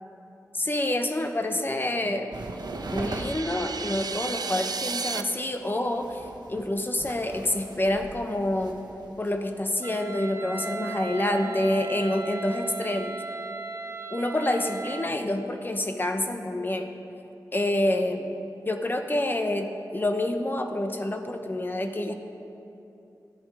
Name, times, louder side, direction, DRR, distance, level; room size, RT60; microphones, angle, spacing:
voice 1, 0.5-2.3 2.9-8.8 9.2-13.2 14.1-16.9 17.5-18.3 18.7-22.1, left 1 dB, 30° left, 6 dB, 0.9 m, -27 dB
sound 1, 2.3-9.6, right 2 dB, 85° right, 1.1 m, -40 dB
sound 2, 2.4-5.2, right 5 dB, 65° right, 0.5 m, -34 dB
Wind instrument woodwind instrument, 9.8-15.2, right 3 dB, 40° right, 0.9 m, -37 dB
13.0 x 10.5 x 5.0 m, 2.9 s
cardioid pair, 60°, 7 cm